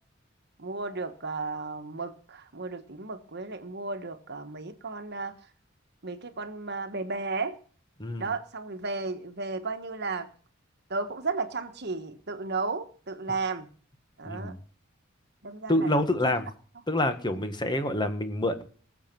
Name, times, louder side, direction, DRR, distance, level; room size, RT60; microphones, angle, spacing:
voice 1, 0.6-5.4 6.0-7.6 8.2-10.3 10.9-13.7 14.2-14.6 15.4-16.4 17.3-17.4, right 3 dB, 55° right, 1.4 m, -34 dB
voice 2, 14.3-14.6 15.7-16.4 16.9-18.7, left 1 dB, 20° left, 1.6 m, -27 dB
20.0 x 7.4 x 6.1 m
head